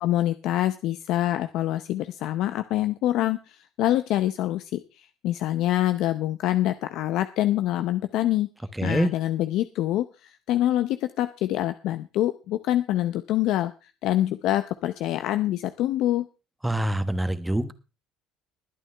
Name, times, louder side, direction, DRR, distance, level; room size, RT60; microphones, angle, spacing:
voice 1, 0.0-8.5 8.8-16.3, left 13 dB, 65° left, 11 dB, 0.6 m, -25 dB
voice 2, 8.8-9.1 16.6-17.7, right 1 dB, 5° right, 12 dB, 1.1 m, -25 dB
20.5 x 9.2 x 3.4 m, 0.31 s
cardioid pair, 115°, 0 cm